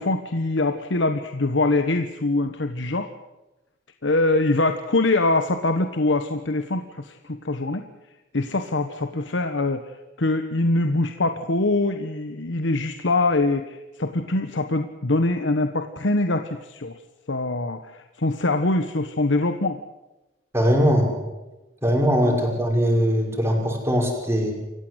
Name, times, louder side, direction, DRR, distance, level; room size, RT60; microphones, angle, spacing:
voice 1, 0.0-3.1 4.0-7.8 8.3-17.0 17.3-19.8 22.2-22.4, left 2 dB, 70° left, 7 dB, 1.2 m, -23 dB
voice 2, 20.5-21.1 21.8-24.5, equal, 15° right, 1 dB, 5.7 m, -20 dB
28.0 x 15.5 x 8.0 m, 1.1 s
head